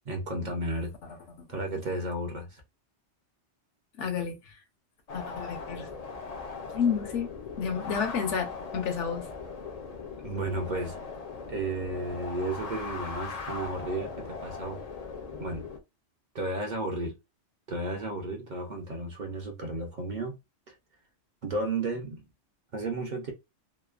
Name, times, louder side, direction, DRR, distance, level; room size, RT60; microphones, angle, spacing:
voice 1, 0.1-0.9 1.5-2.6 10.2-11.0 11.5-14.8 15.4-15.7 16.3-17.2 17.7-20.3 20.7-20.8 21.4-22.2 22.7-23.3, right 2 dB, 50° right, 0.6 m, -33 dB
voice 2, 1.0-1.5 4.0-4.6 5.1-5.9 6.7-7.3 7.6-9.3, left 6 dB, 75° left, 1.0 m, -31 dB
sound 1, 5.1-15.8, left 4 dB, 55° left, 0.4 m, -39 dB
2.9 x 2.0 x 2.3 m
omnidirectional pair, 1.2 m